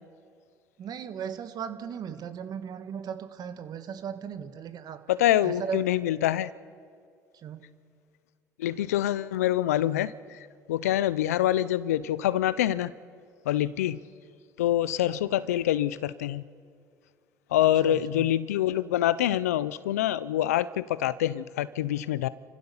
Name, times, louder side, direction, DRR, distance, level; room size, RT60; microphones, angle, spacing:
voice 1, 0.8-5.1 5.4-5.8 7.3-7.6 10.8-11.0 17.6-18.3, right 7 dB, 55° right, 10 dB, 1.5 m, -37 dB
voice 2, 5.1-6.5 8.6-10.1 10.7-12.9 13.5-14.0 14.6-16.4 17.5-22.3, left 12 dB, 90° left, 18 dB, 0.5 m, -25 dB
29.5 x 15.0 x 7.1 m, 2.2 s
hypercardioid pair, 60°, 8 cm